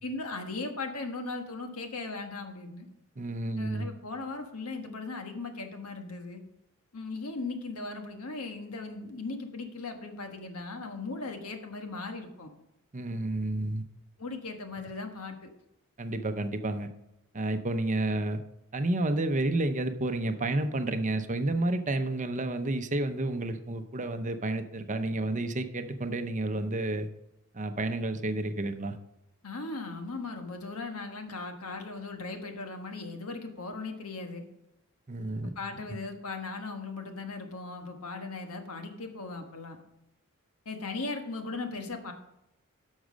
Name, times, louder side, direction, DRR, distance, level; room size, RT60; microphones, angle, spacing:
voice 1, 0.0-2.9 3.6-6.4 6.9-12.5 14.2-15.5 29.4-34.4 35.6-39.8 40.6-42.1, left 3 dB, 75° left, 5 dB, 1.4 m, -38 dB
voice 2, 3.2-3.9 12.9-13.8 16.0-16.9 17.3-18.4 18.7-27.1 27.5-29.0 35.1-35.5, right 2 dB, 35° right, 8 dB, 0.7 m, -30 dB
11.5 x 6.4 x 5.1 m, 0.86 s
head